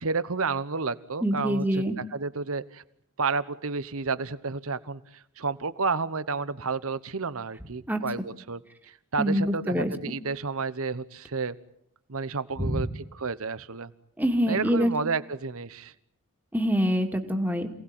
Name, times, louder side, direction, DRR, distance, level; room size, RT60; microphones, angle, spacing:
voice 1, 0.0-1.8 2.1-2.8 3.2-5.0 5.4-8.6 8.9-11.5 12.1-13.9 14.5-15.9, right 4 dB, 65° right, 1.1 m, -31 dB
voice 2, 1.2-1.9 7.9-8.0 9.2-10.1 12.6-12.8 14.2-14.9 16.5-17.7, equal, 10° right, 2.4 m, -25 dB
27.5 x 18.5 x 9.0 m
head